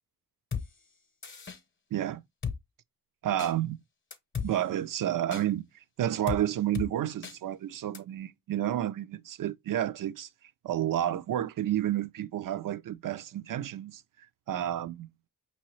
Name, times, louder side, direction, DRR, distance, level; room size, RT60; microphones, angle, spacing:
Drum kit, 0.5-0.7 1.2-1.6 2.4-2.6 3.4-3.5 4.1-4.5 5.3-5.4 6.3-6.4 6.7-6.9 7.2-7.4 7.9-8.0, left 6 dB, 30° left, 0.9 m, -34 dB
voice 1, 1.9-2.2 3.2-3.8 4.4-5.7 6.0-15.1, right 12 dB, 60° right, 0.5 m, -31 dB
5.4 x 2.9 x 3.0 m
cardioid pair, 100°, 37 cm